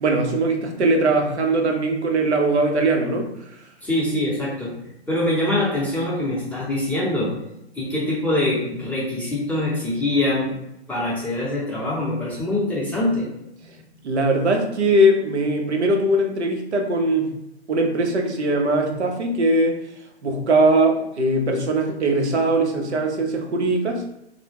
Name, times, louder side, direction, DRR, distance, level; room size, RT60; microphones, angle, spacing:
voice 1, 0.0-3.3 14.0-17.3 17.7-19.8 20.2-24.0, right 1 dB, 85° right, 2 dB, 0.6 m, -20 dB
voice 2, 3.8-4.8 5.1-7.3 7.7-10.6 10.9-13.3, left 1 dB, 5° left, -7 dB, 0.6 m, -24 dB
2.1 x 2.0 x 3.3 m, 0.85 s
figure-of-eight pair, 115°, 33 cm